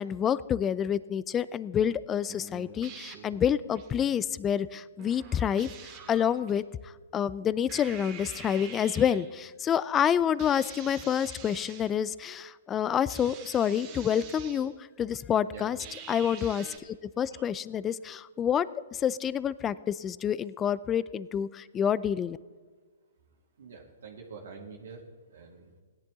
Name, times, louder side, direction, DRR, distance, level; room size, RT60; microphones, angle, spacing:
voice 1, 0.0-5.7 6.1-14.7 15.0-15.8 16.1-18.7 18.9-22.4, left 9 dB, 20° left, 18 dB, 0.4 m, -28 dB
sound 1, 2.3-3.9 5.0-6.6 7.7-9.3 10.4-12.0 13.1-14.7 15.8-16.8, right 7 dB, 35° right, 2.1 m, -46 dB
voice 2, 15.5-16.0 17.3-17.5 23.6-25.8, right 5 dB, 70° right, -1 dB, 1.9 m, -47 dB
17.0 x 10.5 x 3.7 m, 1.5 s
hypercardioid pair, 130°, 0 cm